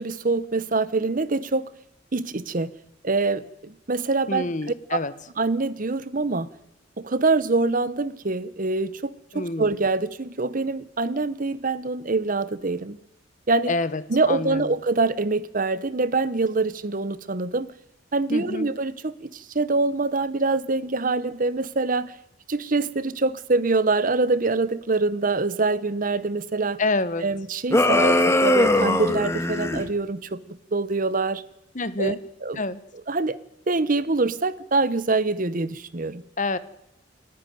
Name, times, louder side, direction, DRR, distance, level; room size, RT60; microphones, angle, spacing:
voice 1, 0.0-1.7 2.1-2.7 3.0-4.5 4.9-5.0 5.4-6.5 7.0-13.0 13.5-13.7 14.1-17.7 18.1-22.1 22.5-26.8 27.2-31.4 32.0-32.2 32.4-32.6 33.1-33.4 33.7-36.2, right 3 dB, 45° right, 17 dB, 0.9 m, -25 dB
voice 2, 4.3-5.1 9.3-9.7 13.7-14.0 14.3-14.6 18.3-18.7 26.8-27.3 31.7-32.2 32.6-32.8 36.4-36.6, left 2 dB, 40° left, 15 dB, 1.2 m, -27 dB
sound 1, 27.7-29.8, left 1 dB, 15° left, 1.6 m, -20 dB
29.0 x 10.5 x 9.4 m, 0.81 s
head